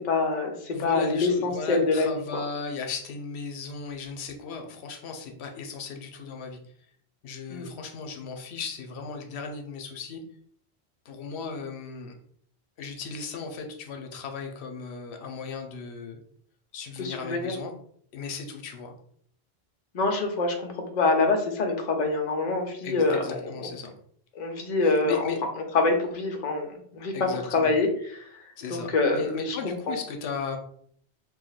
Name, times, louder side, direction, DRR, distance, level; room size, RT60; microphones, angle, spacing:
voice 1, 0.1-2.1 7.5-7.7 17.0-17.5 19.9-23.2 24.4-25.3 25.7-28.3 28.7-29.6 29.9-30.0, left 3 dB, 50° left, 3 dB, 0.6 m, -25 dB
voice 2, 0.7-6.6 7.2-10.2 11.1-12.1 12.8-16.2 16.7-17.7 18.1-19.0 22.8-23.9 24.8-25.4 27.1-27.7 28.6-30.6, left 4 dB, 85° left, 4 dB, 0.9 m, -36 dB
2.6 x 2.1 x 3.9 m, 0.62 s
omnidirectional pair, 1.1 m